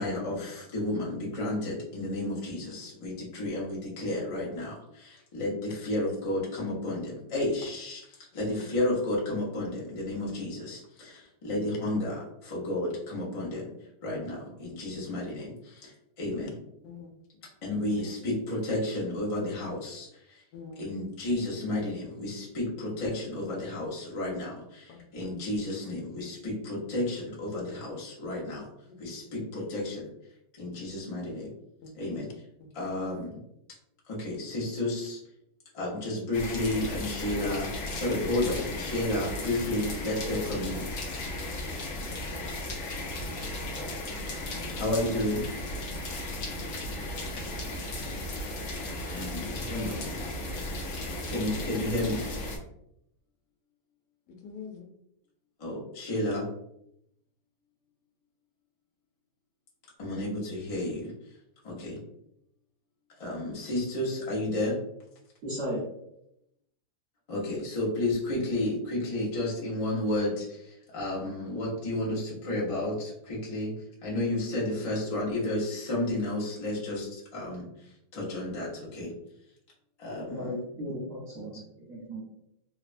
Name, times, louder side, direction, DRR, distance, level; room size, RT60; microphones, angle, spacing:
voice 1, 0.0-8.0 8.3-13.7 14.0-16.5 17.6-20.1 20.8-28.7 29.0-30.0 30.6-31.5 32.0-32.3 32.7-33.4 34.1-35.2 35.7-40.9 44.8-45.4 49.1-50.2 51.3-52.3 55.6-56.5 60.0-61.1 61.6-62.0 63.2-64.8 67.3-73.7 74.0-77.7 78.1-79.1 80.0-80.4, left 1 dB, 40° left, -5 dB, 0.4 m, -32 dB
voice 2, 16.8-17.4 20.5-21.0 22.9-23.1 24.9-25.4 28.9-29.6 31.8-32.3 54.3-54.9, left 5 dB, 85° left, 2 dB, 1.2 m, -46 dB
sound 1, 36.3-52.6, left 1 dB, 65° left, 0.8 m, -35 dB
voice 3, 65.4-65.9 80.2-82.2, equal, 55° right, -4 dB, 1.0 m, -36 dB
3.1 x 2.1 x 2.4 m, 0.79 s
omnidirectional pair, 1.8 m